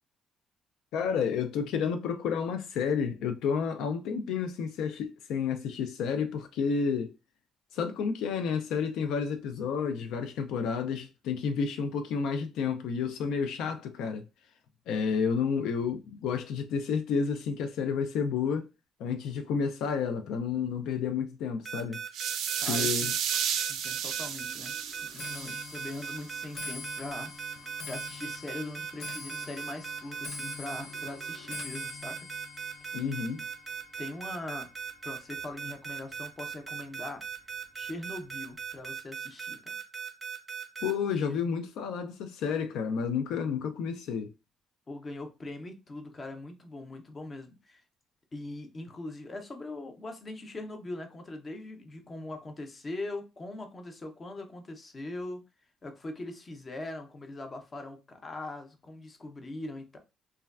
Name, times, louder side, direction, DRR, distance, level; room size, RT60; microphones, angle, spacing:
voice 1, 0.9-7.1 7.7-14.2 14.9-18.7 19.0-22.0 22.7-23.1 32.9-33.4 40.8-44.3, left 6 dB, 80° left, 0.3 m, -30 dB
sound 1, 21.6-40.9, right 7 dB, 15° right, 0.7 m, -38 dB
sound 2, 22.1-26.2, right 9 dB, 80° right, 0.3 m, -32 dB
Clock, 22.6-35.9 36.3-36.7 37.5-37.6 37.9-38.3 38.6-38.7, left 4 dB, 65° left, 0.8 m, -45 dB
voice 2, 22.6-23.1 23.6-27.3 27.8-32.3 34.0-34.7 35.0-37.2 37.7-39.8 41.1-41.4 44.9-47.8 48.3-55.4 55.8-60.0, left 2 dB, 25° left, 0.5 m, -41 dB
3.2 x 2.2 x 2.3 m
cardioid pair, 165°, 0 cm